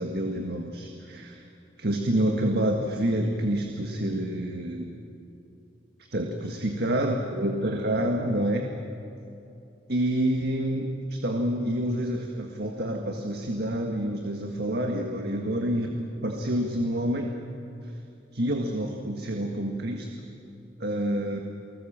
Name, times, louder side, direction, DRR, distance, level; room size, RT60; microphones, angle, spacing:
voice 1, 0.0-1.4 1.8-4.9 6.1-8.7 9.9-17.3 17.8-17.9 18.3-20.2 20.8-21.4, right 1 dB, 60° right, 2 dB, 1.7 m, -28 dB
29.5 x 19.5 x 7.4 m, 2.8 s
head